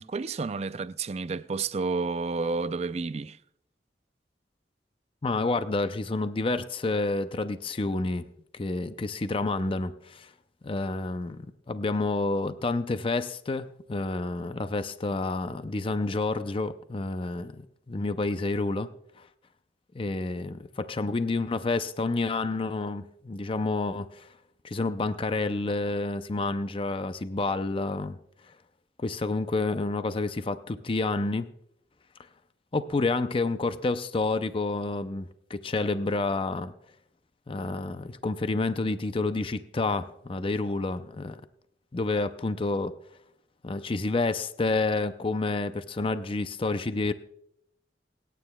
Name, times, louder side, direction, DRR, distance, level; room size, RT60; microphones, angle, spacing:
voice 1, 0.0-3.4, right 4 dB, 40° right, 0.4 m, -30 dB
voice 2, 5.2-8.3 8.5-10.3 10.6-18.9 19.9-24.3 24.6-28.2 29.0-31.5 32.7-36.7 37.5-41.4 41.9-42.9 43.6-47.1, left 3 dB, 30° left, 0.5 m, -29 dB
27.5 x 9.2 x 2.3 m
head